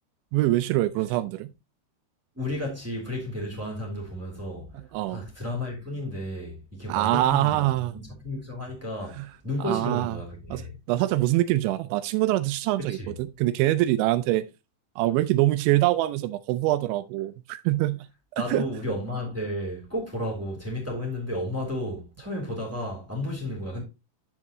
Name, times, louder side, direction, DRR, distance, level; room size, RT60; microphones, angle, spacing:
voice 1, 0.3-1.5 4.7-5.3 6.9-8.0 9.2-9.3 9.6-10.1 10.5-14.5 15.0-18.1 18.5-18.6, right 16 dB, 85° right, 2.7 m, -24 dB
voice 2, 2.3-4.7 5.1-10.8 12.8-13.1 18.4-23.8, left 1 dB, 5° right, 2.1 m, -33 dB
10.5 x 5.8 x 3.0 m
omnidirectional pair, 5.7 m